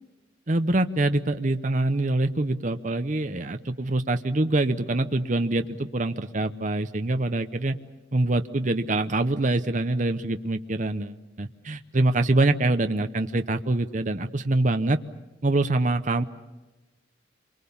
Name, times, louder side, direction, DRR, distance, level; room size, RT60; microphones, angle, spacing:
voice 1, 0.5-7.7 8.1-15.0 15.4-16.2, right 2 dB, 40° right, 8 dB, 0.8 m, -25 dB
27.5 x 24.0 x 7.1 m, 1.1 s
head